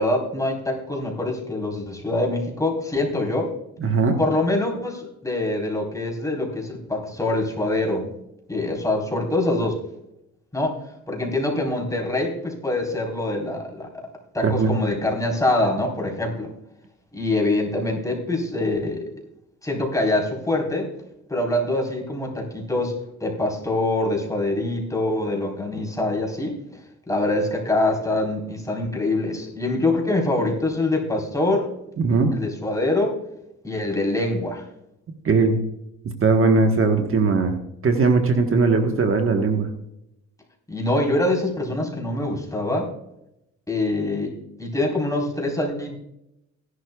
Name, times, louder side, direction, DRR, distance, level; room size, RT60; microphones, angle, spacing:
voice 1, 0.0-3.5 4.2-8.1 8.5-9.8 10.5-10.8 11.1-14.0 14.3-16.5 17.1-19.1 19.6-20.9 21.3-22.9 23.2-26.6 27.1-31.7 32.3-33.2 33.6-34.6 40.7-42.9 43.7-45.9, left 2 dB, 10° left, 0 dB, 4.0 m, -24 dB
voice 2, 3.8-4.2 14.4-14.7 32.0-32.3 35.2-35.6 36.0-37.6 37.8-39.7, right 4 dB, 45° right, 5 dB, 1.3 m, -19 dB
16.5 x 11.5 x 2.3 m, 0.82 s
cardioid pair, 90°, 30 cm